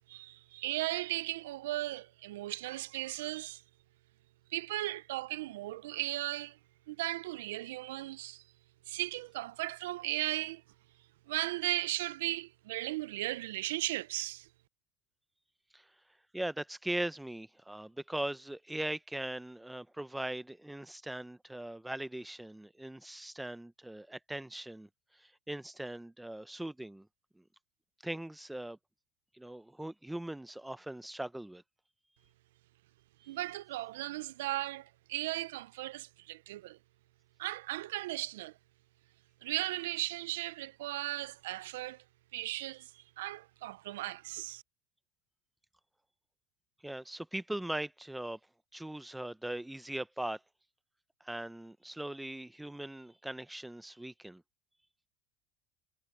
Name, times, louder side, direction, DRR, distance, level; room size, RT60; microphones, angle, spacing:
voice 1, 0.1-3.6 4.5-6.6 6.9-8.4 8.9-10.6 11.3-14.5 33.2-36.8 37.4-38.5 39.4-42.0 42.3-44.6, right 17 dB, 80° right, 0.7 m, -36 dB
voice 2, 16.3-27.1 27.4-27.5 28.0-28.8 29.3-31.6 46.8-48.4 48.7-50.4 51.2-54.4, right 1 dB, 5° right, 0.9 m, -40 dB
hypercardioid pair, 90°, 0 cm